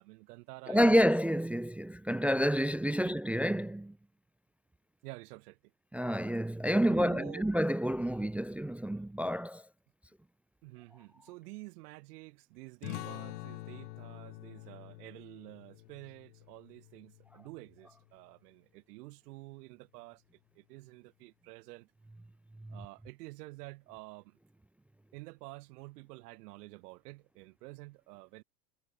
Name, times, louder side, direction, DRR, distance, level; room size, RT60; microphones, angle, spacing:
voice 1, 0.0-1.0 3.0-3.2 5.0-5.7 6.9-7.5 10.6-20.2 20.5-21.9 22.7-24.4 25.1-28.4, right 22 dB, 65° right, 4.8 m, -49 dB
voice 2, 0.7-3.9 5.9-9.6 22.6-22.8, equal, 5° right, 0.4 m, -29 dB
sound 1, 12.8-18.0, left 19 dB, 70° left, 1.8 m, -46 dB
hypercardioid pair, 100°, 50 cm